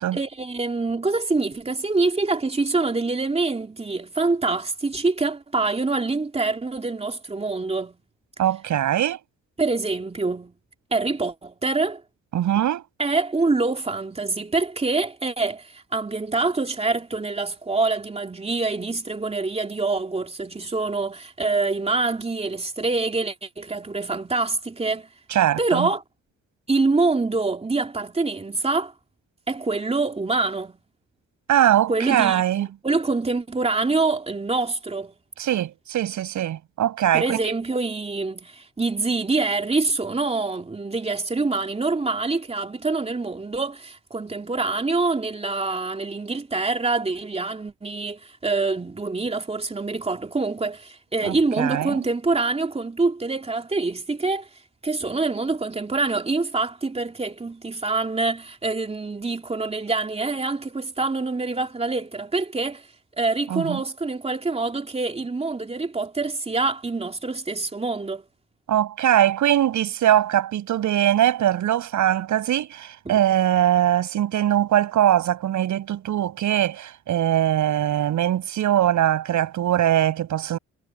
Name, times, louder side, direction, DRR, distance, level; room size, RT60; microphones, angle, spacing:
voice 1, 0.1-8.0 9.6-10.5 10.9-12.0 13.0-25.1 25.6-26.0 26.7-28.9 29.5-30.8 31.9-35.1 37.1-54.5 54.8-62.9 63.2-68.2 73.0-73.2, right 3 dB, 20° right, 2.8 m, -25 dB
voice 2, 8.4-9.2 12.3-12.8 25.3-25.9 31.5-32.7 35.4-37.5 51.2-52.0 63.5-63.8 68.7-80.6, right 11 dB, 75° right, 7.8 m, -21 dB
cardioid pair, 90°, 30 cm